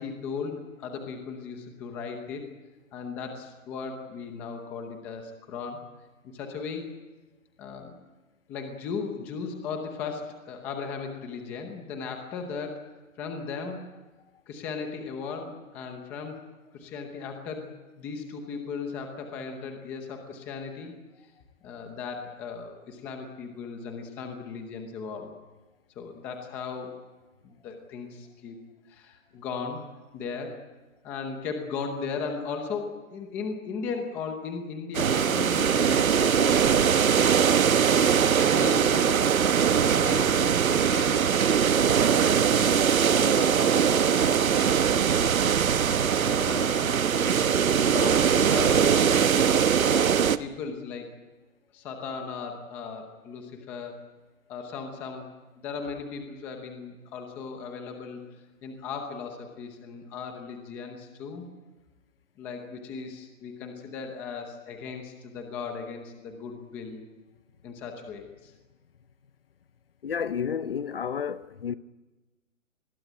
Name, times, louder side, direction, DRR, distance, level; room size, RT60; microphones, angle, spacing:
voice 1, 0.0-2.5 2.9-5.8 6.2-6.9 7.6-7.9 8.5-12.8 13.2-13.8 14.5-16.4 16.7-20.9 21.6-25.3 26.0-27.0 27.4-28.6 28.9-29.9 30.1-30.6 31.0-37.3 37.8-41.2 42.2-42.8 43.1-49.2 49.8-51.1 51.7-54.0 54.5-55.3 55.5-58.2 58.6-61.5 62.4-67.0 67.6-68.5, left 5 dB, 5° left, 0.8 m, -37 dB
sound 1, 34.9-50.4, right 7 dB, 85° right, 1.3 m, -22 dB
voice 2, 70.0-71.8, left 7 dB, 45° left, 0.8 m, -31 dB
26.5 x 21.0 x 9.0 m
hypercardioid pair, 170°, 40 cm